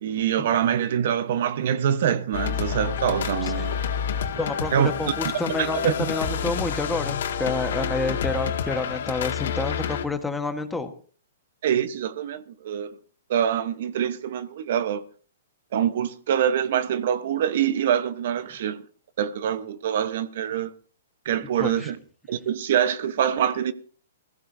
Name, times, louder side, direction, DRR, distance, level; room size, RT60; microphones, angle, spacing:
voice 1, 0.0-3.8 4.7-4.9 5.6-5.9 11.6-13.0 13.3-15.0 15.7-18.8 19.2-20.7 21.2-22.0 22.3-23.7, right 9 dB, 60° right, 1.1 m, -25 dB
sound 1, 2.3-10.0, left 7 dB, 70° left, 2.1 m, -28 dB
voice 2, 4.4-10.9 21.6-21.9, left 2 dB, 5° left, 1.4 m, -29 dB
20.5 x 15.5 x 2.7 m
hypercardioid pair, 150°, 0 cm